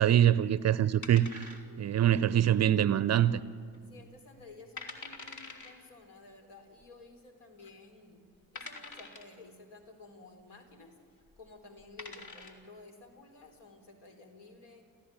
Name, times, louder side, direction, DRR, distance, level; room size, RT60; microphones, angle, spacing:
voice 1, 0.0-3.4, right 11 dB, 35° right, 0.7 m, -25 dB
sound 1, 1.0-2.0 2.2-2.3 3.0-3.4 3.7-3.8 4.4-4.5 4.8-5.7 6.8-6.9 7.6-7.7 8.6-9.4 11.2-11.4 11.8-12.7, left 3 dB, 40° left, 3.3 m, -45 dB
voice 2, 1.7-2.0 3.9-8.3 8.5-11.0 11.4-14.9, left 3 dB, 60° left, 4.0 m, -53 dB
28.5 x 15.0 x 9.0 m
figure-of-eight pair, 45°, 46 cm